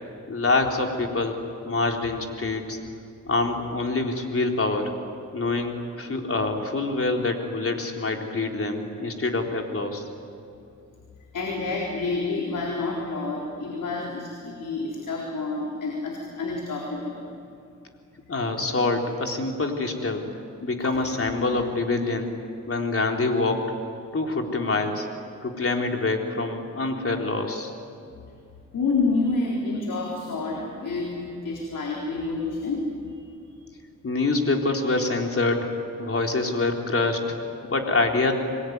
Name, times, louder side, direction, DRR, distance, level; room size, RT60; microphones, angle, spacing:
voice 1, 0.3-1.4 1.7-2.8 3.3-4.9 5.3-10.1 18.3-20.2 20.6-22.3 22.7-23.7 24.1-25.1 25.4-27.7 34.0-35.7 36.0-37.4 37.6-38.3, left 3 dB, 45° left, 2 dB, 3.9 m, -25 dB
voice 2, 11.3-17.2 20.8-20.9 28.7-32.9, left 3 dB, 75° left, -1 dB, 4.0 m, -28 dB
26.0 x 21.5 x 9.6 m, 2.6 s
cardioid pair, 70°, 31 cm